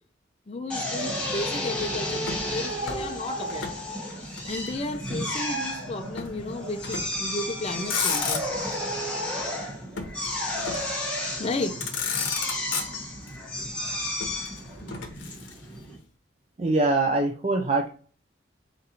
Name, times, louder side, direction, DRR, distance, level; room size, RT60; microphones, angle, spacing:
voice 1, 0.5-3.7 4.5-8.5 11.4-11.7, left 2 dB, 30° left, 0.4 m, -33 dB
Drill, 0.7-16.0, left 1 dB, 5° left, 0.9 m, -32 dB
Motor vehicle (road), 2.2-3.8 4.1-5.2 6.2-6.4 6.8-7.3 7.7-8.8 10.0-11.0 11.5-11.6 11.8-13.3 14.2-15.8, left 6 dB, 75° left, 0.8 m, -33 dB
voice 2, 16.6-17.9, right 2 dB, 30° right, 0.4 m, -23 dB
4.0 x 2.6 x 4.1 m
head